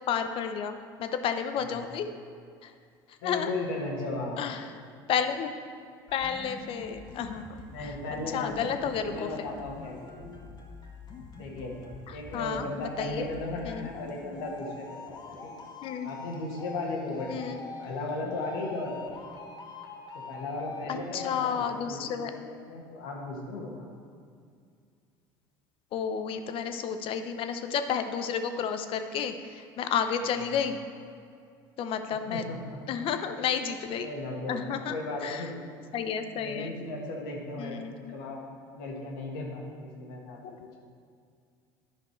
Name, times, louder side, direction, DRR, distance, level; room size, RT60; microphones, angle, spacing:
voice 1, 0.1-2.1 2.6-2.7 3.2-3.5 4.4-4.6 5.1-5.5 6.1-7.9 8.3-9.3 12.3-13.3 13.6-13.9 15.8-16.1 17.3-17.6 20.9-22.3 25.9-30.8 31.8-32.4 32.9-34.1 34.5-35.5 35.9-36.7 37.6-37.9 40.4-40.5, left 7 dB, 55° left, 8 dB, 0.7 m, -31 dB
voice 2, 3.2-4.5 7.7-10.4 11.3-11.8 12.1-15.7 16.0-19.1 20.1-23.9 30.4-30.6 32.3-32.8 34.0-35.6 36.3-40.8, left 2 dB, 80° left, -1 dB, 1.6 m, -36 dB
sound 1, 6.1-22.1, left 3 dB, 40° left, 1.4 m, -45 dB
10.5 x 5.2 x 4.6 m, 2.2 s
hypercardioid pair, 75°, 11 cm